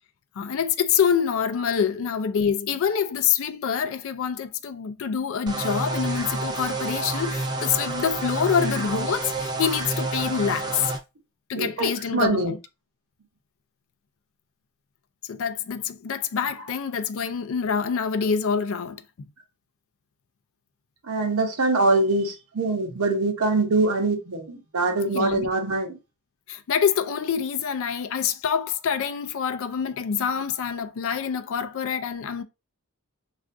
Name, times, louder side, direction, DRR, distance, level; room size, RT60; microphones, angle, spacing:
voice 1, 0.4-10.9 11.5-12.6 15.2-19.0 25.1-25.5 26.5-32.4, left 7 dB, 65° left, 0.4 m, -26 dB
sound 1, 5.5-11.0, right 2 dB, 20° right, 0.4 m, -29 dB
voice 2, 11.6-12.5 21.1-25.9, right 3 dB, 80° right, 0.8 m, -23 dB
3.3 x 2.4 x 2.4 m
head